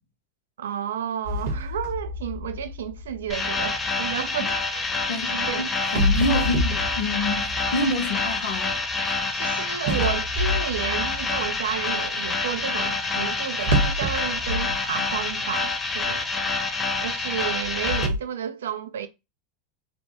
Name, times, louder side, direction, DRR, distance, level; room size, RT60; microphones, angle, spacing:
voice 1, 0.6-5.0 5.3-5.7 9.3-16.2 17.0-19.1, right 9 dB, 80° right, 0.4 m, -32 dB
sound 1, 1.3-4.4 5.4-5.5 5.8-9.2 9.8-11.7 13.6-15.4 15.7-15.8 16.4-16.5 17.5-18.2, equal, 65° right, 0.9 m, -28 dB
sound 2, 3.3-18.1, left 3 dB, 25° left, 0.6 m, -27 dB
voice 2, 5.1-5.7 5.9-8.7, left 2 dB, 75° left, 0.6 m, -27 dB
3.1 x 2.2 x 2.9 m
hypercardioid pair, 90°, 0 cm